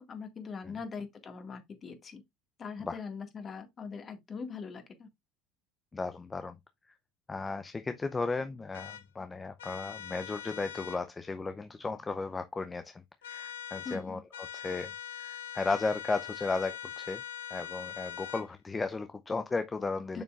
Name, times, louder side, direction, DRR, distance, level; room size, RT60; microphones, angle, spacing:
voice 1, 0.0-2.2 2.6-5.1 13.8-14.2 20.1-20.2, left 5 dB, 35° left, 1.9 m, -41 dB
voice 2, 5.9-6.6 7.3-14.2 14.5-17.2 17.5-20.2, left 3 dB, 20° left, 0.6 m, -35 dB
sound 1, 8.7-9.0 9.6-11.0 13.2-14.0 14.3-18.5, left 9 dB, 90° left, 0.8 m, -42 dB
6.9 x 6.2 x 2.5 m
hypercardioid pair, 75°, 0 cm